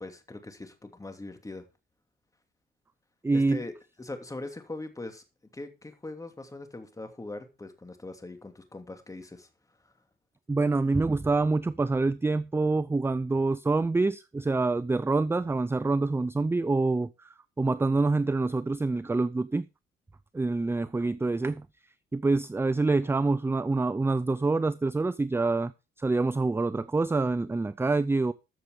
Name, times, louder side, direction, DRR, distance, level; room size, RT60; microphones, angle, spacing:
voice 1, 0.0-1.6 3.3-3.7 4.0-5.2 5.5-9.5 9.8-9.9, left 2 dB, 15° left, 2.8 m, -41 dB
voice 2, 3.2-3.6 10.5-17.3 17.6-19.6 20.3-21.6 22.1-25.7 26.0-28.3, right 3 dB, 10° right, 0.5 m, -26 dB
14.0 x 6.8 x 4.9 m
cardioid pair, 90°, 20 cm